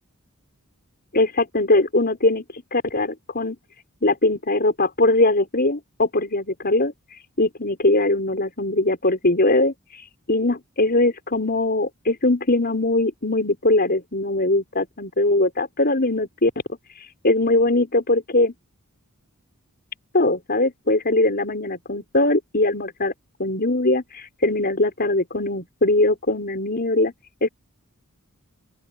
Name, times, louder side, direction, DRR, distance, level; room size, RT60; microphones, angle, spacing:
voice 1, 1.1-3.6 4.0-16.5 16.9-18.5 20.1-23.1 23.4-27.1 27.4-27.5, left 2 dB, 45° left, 5.4 m, -21 dB
open air
head